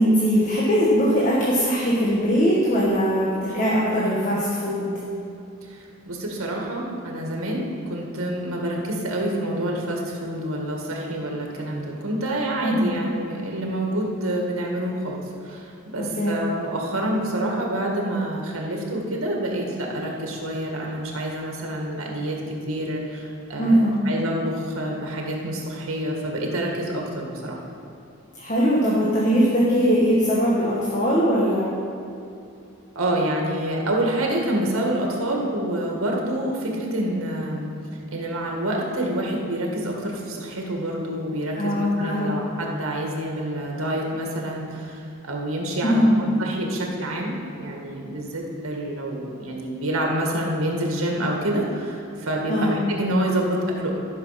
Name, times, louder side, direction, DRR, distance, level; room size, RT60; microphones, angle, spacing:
voice 1, 0.0-4.9 12.6-13.1 16.0-16.3 23.6-24.0 28.3-31.7 41.6-42.4 45.8-46.3 52.5-52.8, equal, 35° left, -5 dB, 1.4 m, -21 dB
voice 2, 5.7-27.6 33.0-37.7 38.1-53.9, right 1 dB, 85° right, 0 dB, 1.9 m, -27 dB
13.0 x 6.1 x 5.8 m, 2.5 s
head